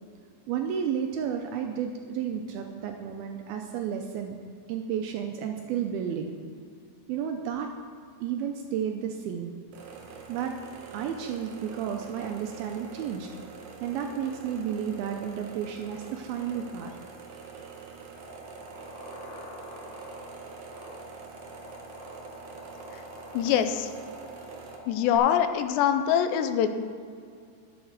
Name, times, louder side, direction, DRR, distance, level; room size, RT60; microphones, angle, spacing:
voice 1, 0.5-4.4 4.7-6.3 7.1-7.7 8.2-9.5 10.3-10.6 10.9-13.3 13.8-17.0 17.6-17.7, right 8 dB, 85° right, 4 dB, 2.3 m, -32 dB
sound 1, 9.7-24.8, right 6 dB, 70° right, 2.9 m, -45 dB
sound 2, 18.2-25.2, left 2 dB, 60° left, 3.7 m, -46 dB
voice 2, 23.3-23.9 24.9-26.7, left 9 dB, 85° left, 9 dB, 2.9 m, -24 dB
11.0 x 8.2 x 6.5 m, 2.3 s
omnidirectional pair, 4.9 m